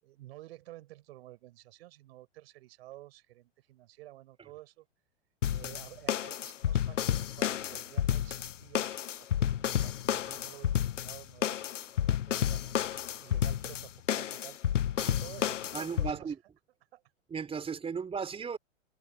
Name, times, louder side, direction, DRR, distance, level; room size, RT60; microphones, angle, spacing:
voice 1, 0.0-4.9 5.5-8.9 9.2-12.8 13.2-14.6 15.0-16.3 16.9-17.0, right 16 dB, 55° right, 5.8 m, -51 dB
sound 1, 5.4-16.1, left 10 dB, 90° left, 0.5 m, -31 dB
voice 2, 15.7-16.4 17.3-18.6, right 6 dB, 15° right, 4.4 m, -36 dB
hypercardioid pair, 105°, 36 cm